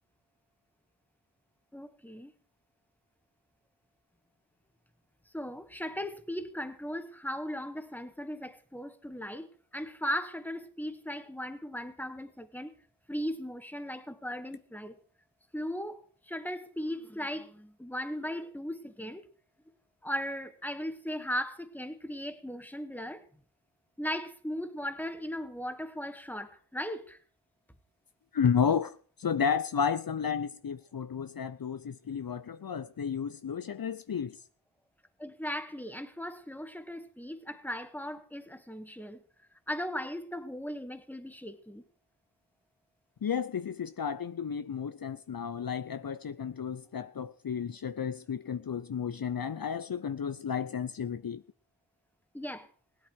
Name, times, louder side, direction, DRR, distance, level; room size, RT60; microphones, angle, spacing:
voice 1, 1.7-2.3 5.3-12.7 13.1-15.0 15.5-19.3 20.0-23.2 24.0-27.2 35.2-39.2 39.7-41.8 52.3-52.7, equal, 5° left, 1.9 m, -37 dB
voice 2, 28.3-34.4 43.2-51.4, left 7 dB, 65° left, 0.7 m, -32 dB
17.0 x 12.0 x 4.7 m
wide cardioid pair, 45°, 38 cm